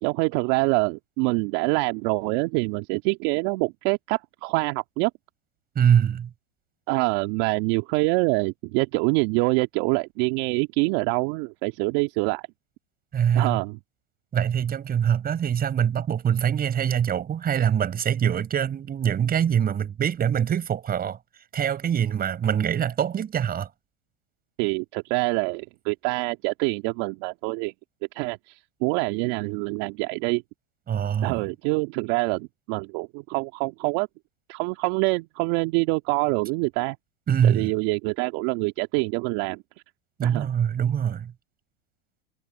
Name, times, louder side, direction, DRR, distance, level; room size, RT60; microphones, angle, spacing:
voice 1, 0.0-5.1 6.9-12.5 13.4-13.8 24.6-27.7 28.1-30.4 31.2-34.1 34.5-37.0 37.4-39.6 40.2-40.5, right 27 dB, 60° right, 2.0 m, -25 dB
voice 2, 5.8-6.3 13.1-13.6 14.3-21.2 21.5-23.7 30.9-31.4 37.3-37.7 40.2-41.3, right 8 dB, 30° right, 5.8 m, -24 dB
hypercardioid pair, 105°, 30 cm